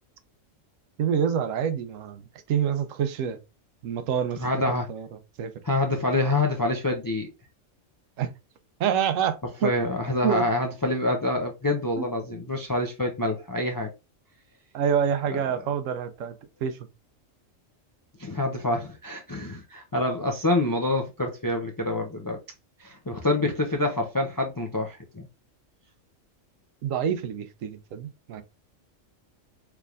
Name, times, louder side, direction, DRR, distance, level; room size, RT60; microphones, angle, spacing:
voice 1, 1.0-3.4 3.8-4.4 4.9-5.1 5.4-5.5 8.2-8.3 8.8-9.7 10.2-10.4 12.0-12.1 14.7-16.3 16.6-16.8 26.8-28.4, right 8 dB, 80° right, 1.0 m, -27 dB
voice 2, 4.4-4.9 5.6-7.3 9.6-13.9 15.5-15.6 18.2-22.4 22.8-25.3, left 2 dB, 35° left, 0.3 m, -26 dB
4.6 x 3.4 x 2.4 m
omnidirectional pair, 1.3 m